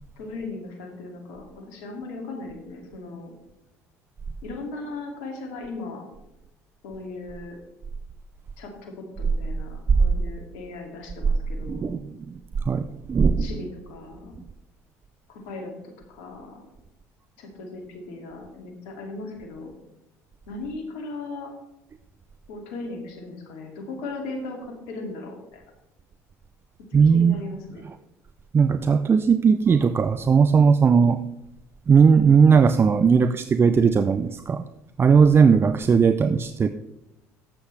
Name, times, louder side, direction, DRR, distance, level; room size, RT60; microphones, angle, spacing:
voice 1, 0.2-3.3 4.4-6.1 6.8-7.6 8.6-11.9 13.4-14.3 15.3-16.6 17.4-19.7 20.5-21.5 22.5-25.6 27.0-27.9, left 3 dB, 75° left, 2 dB, 2.4 m, -37 dB
voice 2, 11.7-12.3 12.7-13.5 26.9-27.4 28.5-31.2 31.9-34.6 35.0-36.7, right 6 dB, 30° right, 11 dB, 0.5 m, -18 dB
12.0 x 8.0 x 3.3 m, 0.91 s
hypercardioid pair, 70°, 8 cm